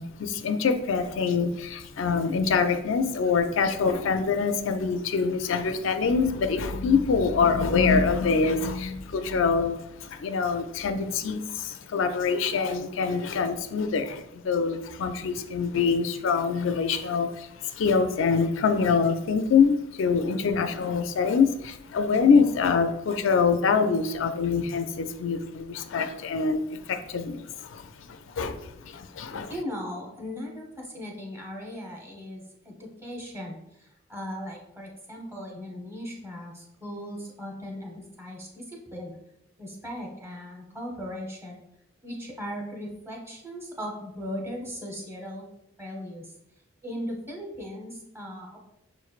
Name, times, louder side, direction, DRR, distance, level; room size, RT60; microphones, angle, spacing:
voice 1, 0.0-29.5, left 5 dB, 80° left, 8 dB, 0.4 m, -25 dB
voice 2, 29.5-39.1 39.6-41.6 42.0-45.5 45.8-46.3 46.8-48.6, equal, 15° right, -1 dB, 0.8 m, -38 dB
6.3 x 3.1 x 2.4 m, 0.82 s
head